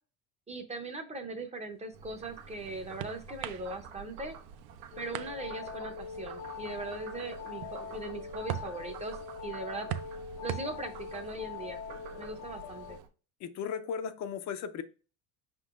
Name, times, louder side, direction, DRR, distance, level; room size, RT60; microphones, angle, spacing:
voice 1, 0.5-4.4 5.0-9.2 9.4-9.9 10.4-11.8 12.2-13.0, right 2 dB, 15° right, 6 dB, 0.6 m, -40 dB
sound 1, 1.9-13.0, right 12 dB, 60° right, 0.5 m, -45 dB
Frog, 1.9-13.1, right 6 dB, 90° right, 1.1 m, -49 dB
sound 2, 4.9-13.0, left 6 dB, 85° left, 1.3 m, -43 dB
voice 2, 13.4-14.8, left 7 dB, 45° left, 10 dB, 0.5 m, -36 dB
5.1 x 3.7 x 2.4 m, 0.35 s
cardioid pair, 135°, 40 cm